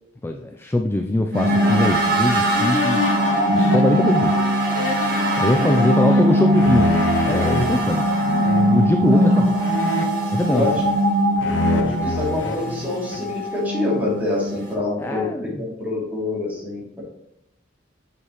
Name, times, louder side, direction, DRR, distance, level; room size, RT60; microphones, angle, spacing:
voice 1, 0.2-3.1 3.5-4.4 5.4-9.6 10.3-10.9 15.0-15.7, left 1 dB, 15° left, 3 dB, 0.3 m, -22 dB
sound 1, 1.3-14.7, equal, 60° right, 1.8 m, -20 dB
sound 2, 2.5-7.8 8.4-8.9 9.6-11.0 11.4-13.3, left 2 dB, 75° left, 0.7 m, -27 dB
voice 2, 11.6-17.0, left 2 dB, 10° right, -6 dB, 2.7 m, -26 dB
6.8 x 6.8 x 3.0 m, 0.79 s
head